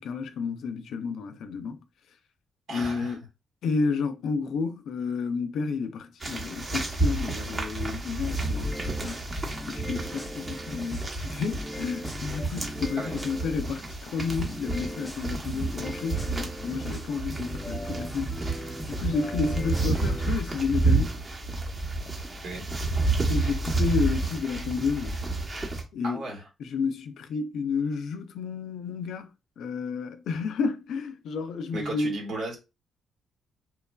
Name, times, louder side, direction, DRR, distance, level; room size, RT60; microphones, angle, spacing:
voice 1, 0.0-1.8 2.7-3.2 3.6-9.2 9.7-21.1 23.0-25.2 25.9-26.2 26.6-32.2, left 5 dB, 80° left, 0.4 m, -31 dB
voice 2, 2.7-3.2 13.0-13.1 22.4-22.7 26.0-26.5 31.7-32.6, right 2 dB, 75° right, 1.2 m, -35 dB
sound 1, 6.2-25.8, right 3 dB, 30° right, 0.8 m, -30 dB
sound 2, 8.3-13.6 14.3-20.3, equal, 5° left, 0.5 m, -39 dB
3.0 x 2.3 x 2.2 m
cardioid pair, 80°, 0 cm